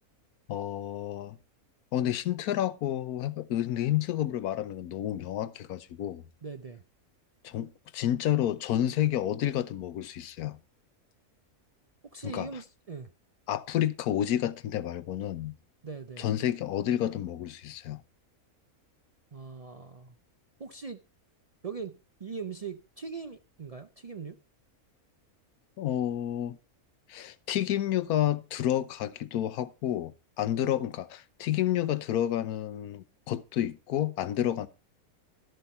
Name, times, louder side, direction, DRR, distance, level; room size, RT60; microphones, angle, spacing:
voice 1, 0.5-1.4 1.9-6.2 7.4-10.6 12.2-12.6 13.5-15.5 16.2-18.0 25.8-26.6 27.1-34.7, left 12 dB, 85° left, 1.2 m, -30 dB
voice 2, 6.4-6.8 12.1-13.1 15.8-16.3 19.3-20.2 20.6-21.0 21.6-24.4 30.6-30.7, right 5 dB, 65° right, 0.3 m, -41 dB
12.5 x 7.9 x 4.3 m
omnidirectional pair, 1.6 m